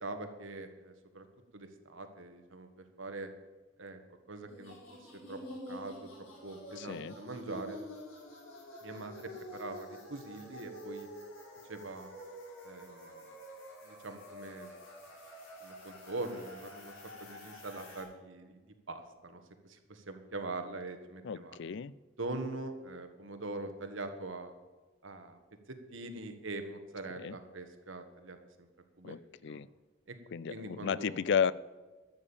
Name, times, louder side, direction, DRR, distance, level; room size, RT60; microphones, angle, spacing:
voice 1, 0.0-1.2 1.5-3.3 3.8-4.0 4.3-4.8 5.0-5.4 5.7-6.1 6.4-7.8 8.8-11.1 11.7-12.1 12.6-13.3 13.8-14.7 15.6-21.6 22.2-24.5 25.0-25.4 25.7-28.7 29.0-29.2 29.4-29.6 30.1-30.2 30.5-31.3, right 2 dB, 65° right, 7 dB, 1.5 m, -43 dB
sound 1, 4.5-18.0, left 1 dB, 85° left, 5.0 m, -48 dB
voice 2, 6.8-7.1 21.2-21.9 27.2-27.3 29.0-29.7 30.3-31.5, left 7 dB, 55° left, 20 dB, 0.4 m, -33 dB
12.0 x 7.3 x 8.6 m, 1.2 s
head